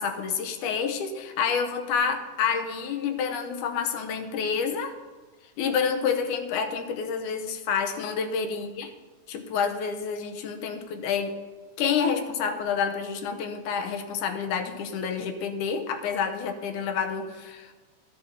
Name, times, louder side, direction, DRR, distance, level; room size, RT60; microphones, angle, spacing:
voice 1, 0.0-4.9 5.6-8.9 9.3-11.3 11.8-17.8, left 6 dB, 85° left, 6 dB, 2.3 m, -28 dB
11.5 x 6.0 x 5.7 m, 1.3 s
omnidirectional pair, 3.5 m